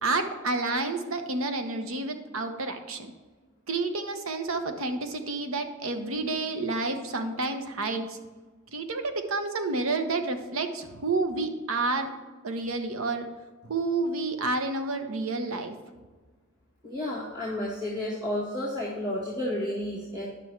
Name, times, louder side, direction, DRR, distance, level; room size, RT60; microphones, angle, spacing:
voice 1, 0.0-3.1 3.7-8.2 8.7-12.1 12.4-13.3 13.6-15.7, right 3 dB, 75° right, 7 dB, 0.9 m, -29 dB
voice 2, 16.8-20.3, left 1 dB, 20° right, -6 dB, 1.6 m, -31 dB
10.0 x 6.1 x 4.5 m, 1.4 s
head